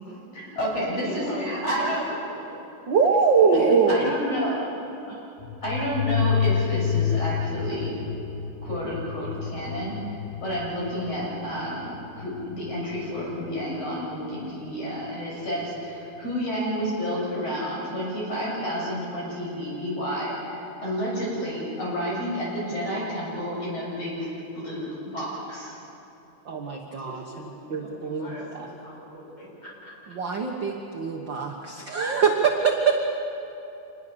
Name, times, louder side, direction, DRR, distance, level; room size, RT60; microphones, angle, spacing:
voice 1, 0.3-2.0 3.5-4.6 5.1-5.2 5.6-8.0 8.6-25.7, equal, 50° left, -4 dB, 7.6 m, -30 dB
voice 2, 1.0-2.5 27.0-29.9, left 1 dB, 30° left, -4 dB, 7.1 m, -40 dB
voice 3, 2.9-4.1 26.5-27.2 27.7-28.7 30.1-32.9, right 5 dB, 50° right, 1 dB, 1.5 m, -23 dB
sound 1, 5.4-13.8, left 8 dB, 90° left, 2.3 m, -29 dB
26.0 x 21.0 x 6.9 m, 2.9 s
omnidirectional pair, 3.6 m